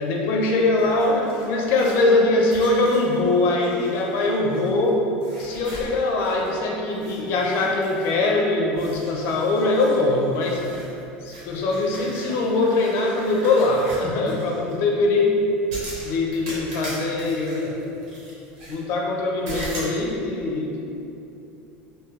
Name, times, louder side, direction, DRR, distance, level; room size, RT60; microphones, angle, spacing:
voice 1, 0.0-5.0 5.4-10.6 11.2-15.3 16.0-17.8 18.7-20.8, left 2 dB, 50° left, -1 dB, 0.5 m, -22 dB
sound 1, 0.8-4.9 5.2-6.6 6.9-8.4 8.7-14.7 15.7-18.8 19.5-20.0, right 1 dB, 85° right, 1.1 m, -40 dB
2.6 x 2.4 x 3.2 m, 2.8 s
cardioid pair, 160°, 5 cm